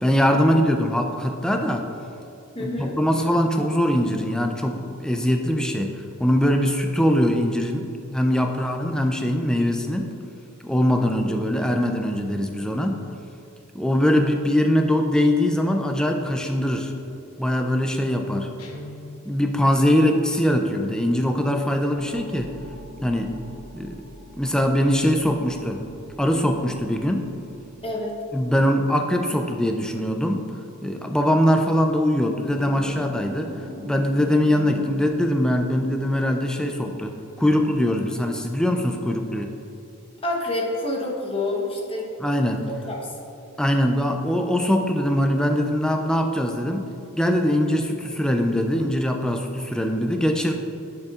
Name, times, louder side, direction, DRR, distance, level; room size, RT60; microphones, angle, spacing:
voice 1, 0.0-1.9 2.6-10.1 10.6-13.0 13.7-16.9 17.4-18.5 19.3-22.5 23.0-23.3 23.7-24.0 24.4-25.8 26.2-27.3 28.3-30.5 30.8-33.5 33.9-39.5 42.2-42.6 43.6-46.9 47.1-50.5, equal, 5° left, 3 dB, 0.3 m, -22 dB
voice 2, 2.5-2.9 27.8-28.1 40.2-42.1 42.7-43.0, left 2 dB, 25° left, -2 dB, 0.9 m, -27 dB
Guitar, 18.6-19.7, left 1 dB, 70° left, 0.7 m, -42 dB
sound 1, 22.0-28.2, equal, 75° right, 1.3 m, -45 dB
sound 2, 32.7-37.7, equal, 50° right, 0.7 m, -40 dB
7.8 x 6.7 x 2.4 m, 2.8 s
head